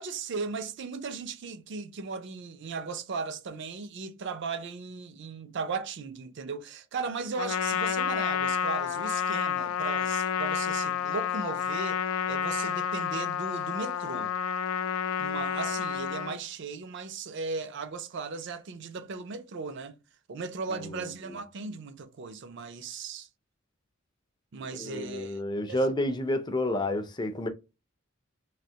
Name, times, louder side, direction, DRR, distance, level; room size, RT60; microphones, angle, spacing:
voice 1, 0.0-12.0 12.3-14.3 15.2-20.0 20.3-23.3 24.5-25.4 25.7-25.8, right 4 dB, 55° right, 0.4 m, -37 dB
Trumpet, 7.4-16.4, left 8 dB, 90° left, 0.3 m, -30 dB
voice 2, 24.7-27.5, left 1 dB, 20° left, 0.4 m, -29 dB
3.2 x 2.8 x 2.8 m
head